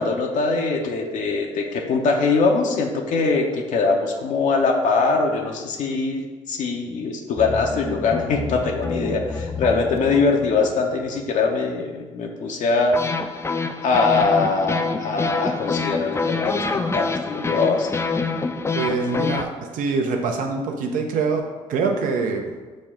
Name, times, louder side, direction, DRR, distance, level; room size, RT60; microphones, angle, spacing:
voice 1, 0.0-13.0 13.8-17.9, left 4 dB, 60° left, 2 dB, 0.6 m, -22 dB
sound 1, 7.4-11.2 12.9-19.4, left 4 dB, 20° left, 0.4 m, -27 dB
voice 2, 18.7-21.4 21.7-22.6, right 4 dB, 65° right, 3 dB, 0.7 m, -24 dB
6.2 x 2.2 x 3.6 m, 1.3 s
hypercardioid pair, 50°, 15 cm